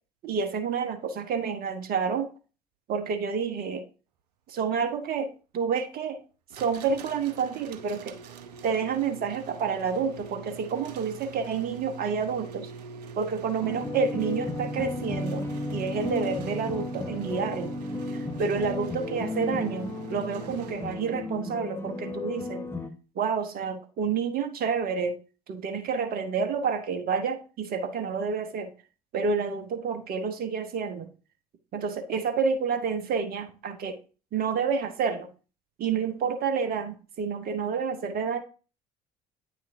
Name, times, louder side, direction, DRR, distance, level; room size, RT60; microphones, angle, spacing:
voice 1, 0.2-2.3 2.9-3.8 4.5-6.2 6.5-8.2 8.6-12.7 13.2-15.5 15.7-17.7 18.1-22.7 23.1-25.2 25.5-28.7 29.1-31.1 31.7-34.0 34.3-35.3 35.8-38.4, right 5 dB, 45° right, 8 dB, 1.2 m, -29 dB
sound 1, 6.5-21.2, right 8 dB, 75° right, 0.7 m, -44 dB
sound 2, 13.6-22.9, left 2 dB, 10° left, 0.9 m, -34 dB
9.0 x 6.2 x 2.7 m, 0.33 s
figure-of-eight pair, 60°, 21 cm